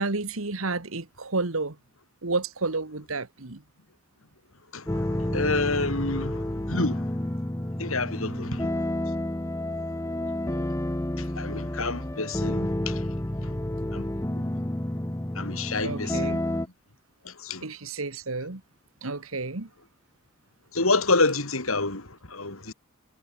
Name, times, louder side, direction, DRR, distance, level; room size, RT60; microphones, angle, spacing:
voice 1, 0.0-1.8 2.2-3.6 8.3-8.5 15.8-16.4 17.6-18.6 19.0-19.7, right 3 dB, 85° right, 1.8 m, -31 dB
voice 2, 4.7-7.0 7.8-8.7 10.4-10.7 11.2-13.0 13.9-14.5 15.3-16.4 17.2-17.6 20.7-22.7, left 3 dB, 85° left, 4.8 m, -28 dB
sound 1, 4.9-16.7, left 1 dB, 15° left, 0.9 m, -30 dB
head